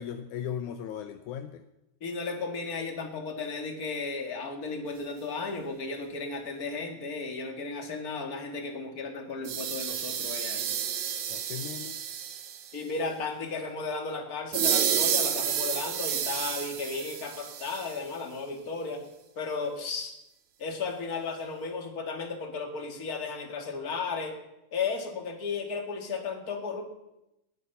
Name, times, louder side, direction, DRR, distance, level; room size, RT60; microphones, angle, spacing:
voice 1, 0.0-1.6 11.3-12.0, left 9 dB, 75° left, 8 dB, 2.1 m, -37 dB
voice 2, 2.0-10.7 12.7-19.0 19.4-20.1 20.6-24.3 24.7-26.8, left 4 dB, 30° left, 3 dB, 2.3 m, -34 dB
sound 1, 9.4-12.8 14.5-18.0, right 9 dB, 70° right, 2.5 m, -30 dB
20.0 x 10.0 x 5.6 m, 0.88 s
omnidirectional pair, 3.6 m